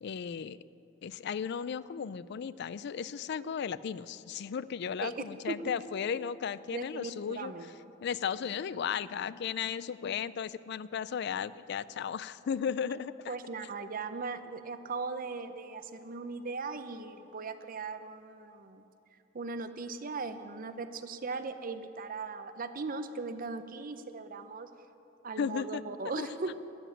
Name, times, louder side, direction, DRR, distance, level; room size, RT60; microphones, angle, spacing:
voice 1, 0.0-0.6 1.0-7.5 8.0-13.3 25.4-25.8 26.2-26.3, left 7 dB, 60° left, 17 dB, 0.4 m, -35 dB
voice 2, 5.0-5.7 6.7-7.7 13.3-18.9 19.3-24.7 25.2-26.6, right 4 dB, 45° right, 10 dB, 0.7 m, -38 dB
13.0 x 7.2 x 9.4 m, 2.8 s
head